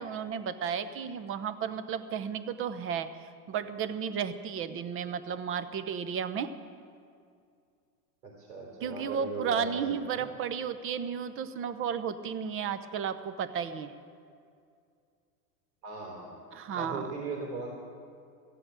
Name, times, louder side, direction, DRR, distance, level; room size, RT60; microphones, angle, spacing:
voice 1, 0.0-3.1 3.5-6.5 8.8-13.9 16.5-17.1, right 7 dB, 25° right, 12 dB, 0.7 m, -33 dB
voice 2, 8.2-10.3 15.8-16.3 16.7-17.7, right 3 dB, 80° right, -2 dB, 3.7 m, -38 dB
14.5 x 7.8 x 9.1 m, 2.3 s
hypercardioid pair, 120°, 48 cm